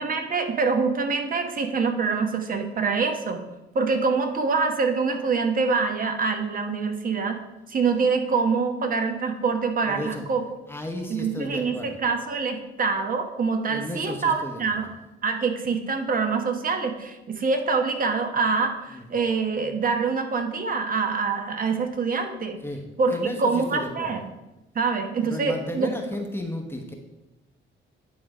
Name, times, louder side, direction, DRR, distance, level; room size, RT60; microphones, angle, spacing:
voice 1, 0.0-3.5 3.7-7.4 7.7-10.5 11.1-14.9 15.2-22.6 23.0-24.2 24.7-25.9, right 4 dB, 45° right, 6 dB, 1.0 m, -25 dB
voice 2, 9.9-10.3 10.7-12.0 13.7-14.8 18.9-19.2 22.6-24.2 25.2-26.9, left 1 dB, 10° left, 2 dB, 1.0 m, -34 dB
10.0 x 3.4 x 4.9 m, 1.0 s
cardioid pair, 90°, 20 cm